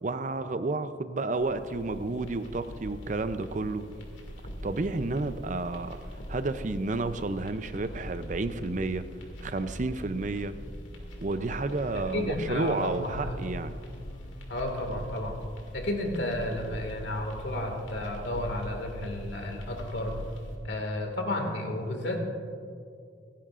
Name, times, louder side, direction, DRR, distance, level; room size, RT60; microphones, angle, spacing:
voice 1, 0.0-3.8 4.6-6.0 6.3-9.1 9.4-10.5 11.2-13.8, right 3 dB, 40° right, 11 dB, 0.5 m, -31 dB
sound 1, 1.3-20.5, equal, 90° left, 2.2 m, -42 dB
sound 2, 11.6-15.2, equal, 50° left, 1.8 m, -49 dB
voice 2, 11.9-13.5 14.5-15.4 15.7-20.2 20.6-22.2, left 1 dB, 70° left, 2 dB, 2.0 m, -32 dB
26.5 x 10.0 x 2.5 m, 2.3 s
head